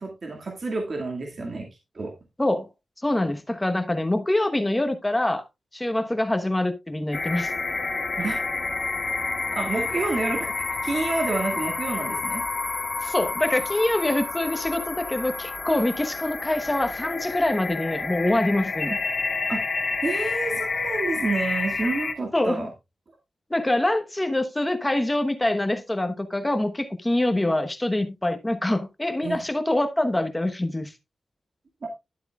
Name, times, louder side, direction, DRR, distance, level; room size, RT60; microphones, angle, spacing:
voice 1, 0.0-1.7 1.9-2.1 8.2-8.4 9.5-12.4 18.9-19.0 19.5-19.6 20.0-22.7 29.2-29.4, right 3 dB, 50° right, 2.1 m, -29 dB
voice 2, 3.0-5.4 5.7-7.5 13.0-18.9 22.3-22.7 23.5-30.9, left 1 dB, 15° left, 1.1 m, -25 dB
sound 1, 7.1-22.1, left 3 dB, 45° left, 1.6 m, -29 dB
11.5 x 7.7 x 2.4 m
wide cardioid pair, 90°, 0 cm